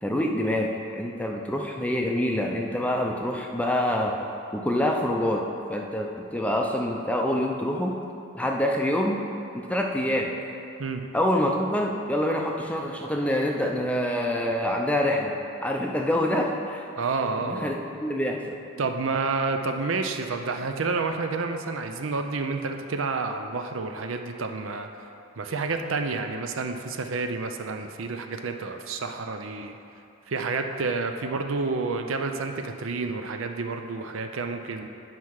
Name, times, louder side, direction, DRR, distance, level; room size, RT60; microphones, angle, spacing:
voice 1, 0.0-4.1 4.5-5.4 5.7-7.9 8.3-9.2 9.5-10.3 11.1-15.3 15.6-16.8 17.5-18.6, left 1 dB, 5° left, 1 dB, 0.5 m, -26 dB
voice 2, 17.0-17.7 18.8-24.9 25.4-29.8 30.3-34.9, right 4 dB, 75° right, 5 dB, 0.6 m, -29 dB
9.3 x 5.7 x 4.7 m, 2.7 s
head